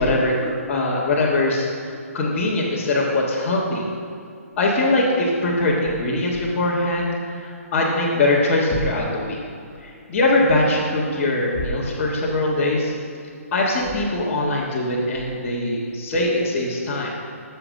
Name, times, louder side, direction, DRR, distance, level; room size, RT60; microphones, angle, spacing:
voice 1, 0.0-3.8 4.6-7.1 7.4-9.4 9.8-12.9 13.5-17.1, left 2 dB, 20° left, -9 dB, 1.4 m, -22 dB
12.5 x 6.8 x 6.3 m, 2.4 s
hypercardioid pair, 170°, 8 cm